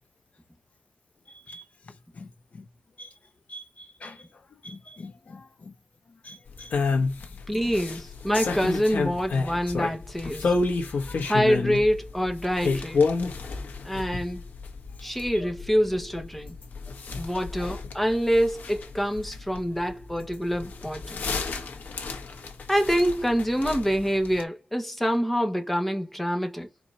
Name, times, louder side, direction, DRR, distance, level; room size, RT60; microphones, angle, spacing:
voice 1, 2.2-2.6 3.0-3.1 3.5-4.2 4.6-5.7 6.2-6.7 7.0-7.1 7.6-7.7 11.1-11.3, left 2 dB, 50° left, 1.0 m, -44 dB
sound 1, 6.5-24.4, left 4 dB, 80° left, 1.4 m, -31 dB
voice 2, 7.5-10.5 11.2-13.0 13.8-14.4 15.0-16.6 17.2-21.2 22.7-26.7, equal, 5° left, 1.2 m, -26 dB
4.7 x 3.9 x 5.6 m
wide cardioid pair, 135°, 3 cm